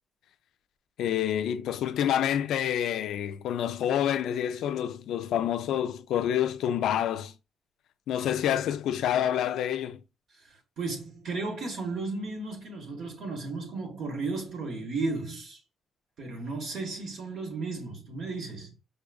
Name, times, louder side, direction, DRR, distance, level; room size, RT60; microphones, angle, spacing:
voice 1, 1.0-7.3 8.1-10.0, left 10 dB, 80° left, 0.3 m, -28 dB
voice 2, 10.8-15.6 16.2-18.7, right 3 dB, 65° right, 1.3 m, -34 dB
4.9 x 2.5 x 2.2 m
cardioid pair, 90°, 0 cm